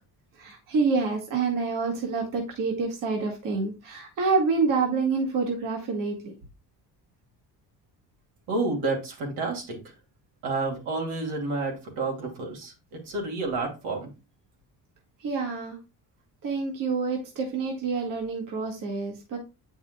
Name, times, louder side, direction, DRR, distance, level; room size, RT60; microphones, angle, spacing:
voice 1, 0.4-6.3 15.2-15.8 16.4-19.4, right 4 dB, 55° right, 1 dB, 1.6 m, -27 dB
voice 2, 8.5-9.8 10.4-14.1, right 3 dB, 85° right, 0 dB, 2.6 m, -30 dB
8.3 x 5.4 x 2.2 m, 0.28 s
cardioid pair, 130°, 39 cm